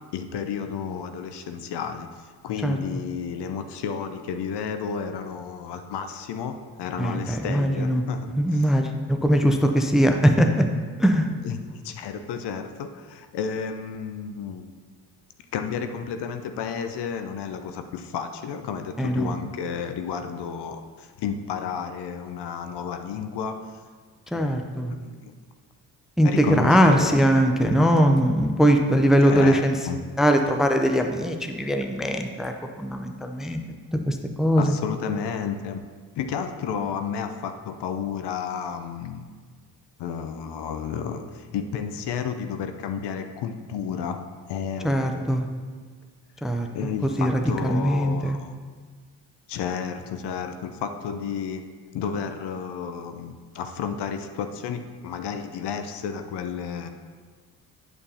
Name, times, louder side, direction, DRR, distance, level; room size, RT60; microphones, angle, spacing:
voice 1, 0.1-8.7 11.4-14.6 15.5-23.6 24.3-24.6 24.9-25.3 26.2-27.2 27.6-27.9 29.3-30.0 34.6-35.8 36.2-39.2 40.0-44.2 44.5-45.2 46.7-48.5 49.5-51.6 51.9-56.9, left 7 dB, 55° left, 7 dB, 0.7 m, -32 dB
voice 2, 7.0-8.0 8.3-10.7 11.0-11.3 19.0-19.3 24.3-24.9 26.2-29.7 30.2-33.6 34.1-34.7 44.8-45.5 46.4-48.4, equal, ahead, 5 dB, 0.6 m, -21 dB
8.6 x 6.7 x 2.7 m, 1.5 s
hypercardioid pair, 45°, 49 cm